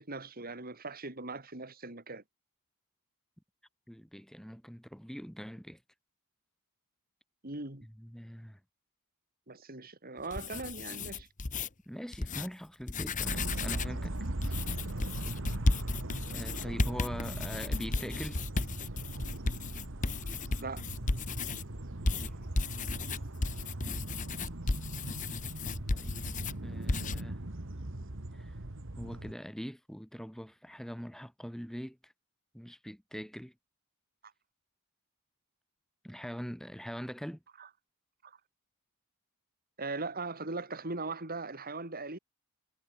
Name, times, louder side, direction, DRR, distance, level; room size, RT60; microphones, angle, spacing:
voice 1, 0.0-2.2 7.4-7.9 9.5-11.3 20.6-20.8 37.6-37.7 38.2-38.4 39.8-42.2, right 3 dB, 40° right, 4.0 m, -39 dB
voice 2, 3.9-5.8 8.0-8.6 11.9-14.7 16.3-18.4 22.1-22.3 25.9-27.4 28.3-28.5 29.0-32.1 32.5-33.5 36.0-37.4, equal, ahead, 4.1 m, -43 dB
sound 1, 10.2-11.7 12.1-12.5 12.8-14.0 14.4-21.6 22.1-26.6 26.9-27.2, left 3 dB, 35° left, 1.0 m, -34 dB
sound 2, 13.3-29.3, right 1 dB, 60° right, 1.9 m, -40 dB
head